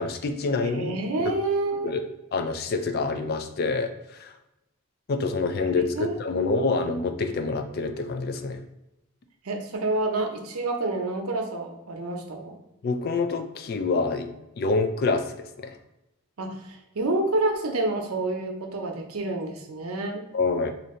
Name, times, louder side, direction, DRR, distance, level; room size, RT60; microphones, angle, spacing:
voice 1, 0.0-1.0 1.8-2.0 2.3-4.3 5.1-8.6 12.8-15.8 20.3-20.7, left 3 dB, 45° left, 7 dB, 0.3 m, -27 dB
voice 2, 0.7-2.1 5.9-6.9 9.4-12.6 16.4-20.3, right 2 dB, 90° right, 3 dB, 0.7 m, -28 dB
2.7 x 2.6 x 4.2 m, 0.93 s
head